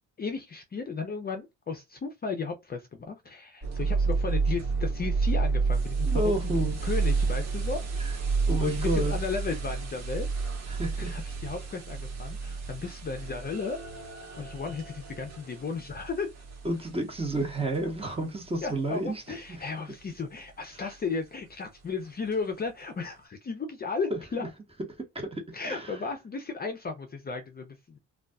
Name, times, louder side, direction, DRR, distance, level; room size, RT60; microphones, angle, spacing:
voice 1, 0.2-6.3 6.8-7.8 8.6-10.3 11.0-13.8 14.1-16.3 18.6-24.5 25.5-28.0, left 4 dB, 30° left, 0.5 m, -34 dB
sound 1, 3.6-18.4 18.9-19.0 19.6-19.7 22.3-22.4, right 4 dB, 60° right, 1.2 m, -30 dB
voice 2, 6.1-6.8 8.5-9.1 10.7-11.2 16.6-19.2 20.8-20.9 24.1-24.2 25.1-26.0, right 1 dB, 20° right, 1.1 m, -30 dB
2.4 x 2.3 x 2.2 m
cardioid pair, 90°, 30 cm